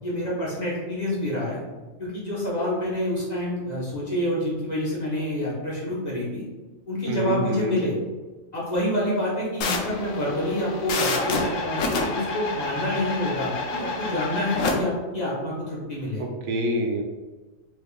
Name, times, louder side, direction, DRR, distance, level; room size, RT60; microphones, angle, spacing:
voice 1, 0.0-1.6 2.0-6.4 6.9-7.9 8.5-16.2, left 1 dB, 35° left, -7 dB, 0.9 m, -27 dB
voice 2, 7.1-7.8 16.2-17.0, equal, 80° right, 2 dB, 1.0 m, -27 dB
sound 1, 9.6-14.7, left 3 dB, 75° left, 1.0 m, -28 dB
3.4 x 3.3 x 2.3 m, 1.2 s
omnidirectional pair, 1.4 m